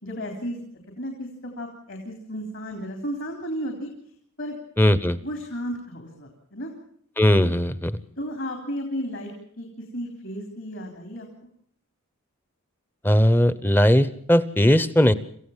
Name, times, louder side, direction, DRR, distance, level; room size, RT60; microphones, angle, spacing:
voice 1, 0.0-0.6 1.0-3.9 4.4-4.6 5.2-6.7 8.2-9.7 9.9-11.3, equal, 60° left, 3 dB, 3.7 m, -33 dB
voice 2, 4.8-5.2 7.2-8.0 13.0-15.1, equal, 10° left, 15 dB, 0.8 m, -18 dB
27.0 x 15.5 x 7.3 m, 0.66 s
head